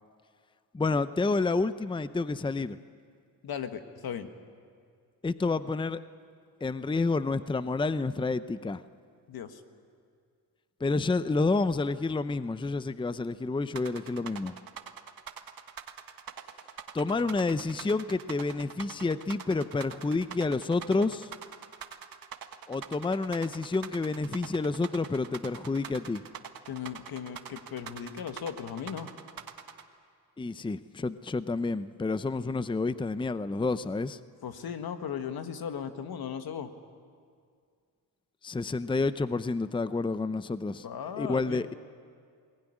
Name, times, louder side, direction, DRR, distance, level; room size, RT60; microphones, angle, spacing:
voice 1, 0.7-2.8 5.2-6.0 6.6-8.8 10.8-14.5 16.9-21.3 22.7-26.3 30.4-34.2 38.4-40.9 41.2-41.7, left 3 dB, 15° left, 14 dB, 0.6 m, -29 dB
voice 2, 3.4-4.3 9.3-9.6 26.7-29.1 34.4-36.7 40.8-41.7, left 8 dB, 75° left, 8 dB, 1.6 m, -37 dB
sound 1, 13.8-29.8, right 8 dB, 65° right, 1.6 m, -43 dB
22.5 x 20.0 x 10.0 m, 2.2 s
cardioid pair, 75°, 37 cm